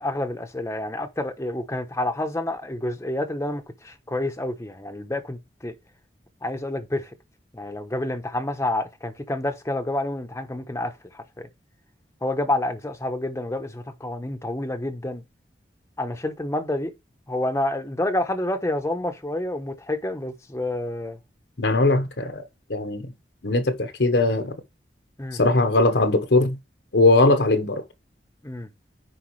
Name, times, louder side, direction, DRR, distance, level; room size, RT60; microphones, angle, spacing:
voice 1, 0.0-5.8 6.4-7.1 7.5-11.2 12.2-15.2 16.0-16.9 17.3-21.2 25.2-25.4 28.4-28.7, left 1 dB, 15° left, 0.9 m, -28 dB
voice 2, 21.6-22.4 22.7-23.1 23.4-24.6 25.3-26.6 26.9-27.8, left 2 dB, 75° left, 1.1 m, -20 dB
10.0 x 4.6 x 3.2 m
head